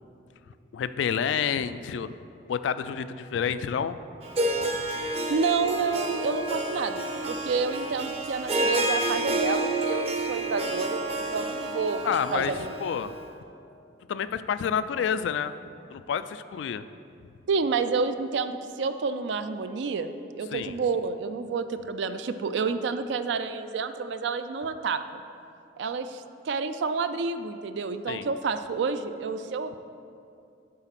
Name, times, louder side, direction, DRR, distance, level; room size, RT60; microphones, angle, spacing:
voice 1, 0.7-2.1 2.5-4.0 12.0-13.1 14.1-15.5 15.9-16.8 20.5-20.8 28.1-28.3, left 7 dB, 80° left, 13 dB, 0.3 m, -29 dB
Harp, 4.2-13.2, right 2 dB, 35° right, 0.7 m, -29 dB
voice 2, 5.3-12.8 17.5-25.0 25.8-29.8, right 4 dB, 70° right, 10 dB, 0.4 m, -29 dB
7.6 x 4.9 x 5.8 m, 2.5 s
head